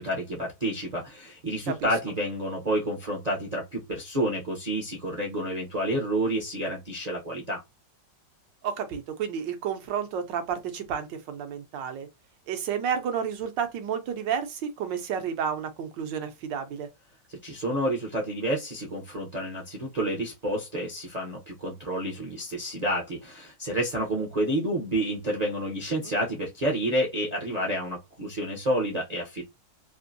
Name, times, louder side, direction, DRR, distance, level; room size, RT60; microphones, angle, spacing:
voice 1, 0.0-7.6 17.3-29.4, right 1 dB, 50° right, 0.5 m, -29 dB
voice 2, 8.6-12.1 12.5-16.9 26.0-26.2, right 7 dB, 80° right, 1.5 m, -31 dB
3.7 x 2.5 x 2.6 m
omnidirectional pair, 1.9 m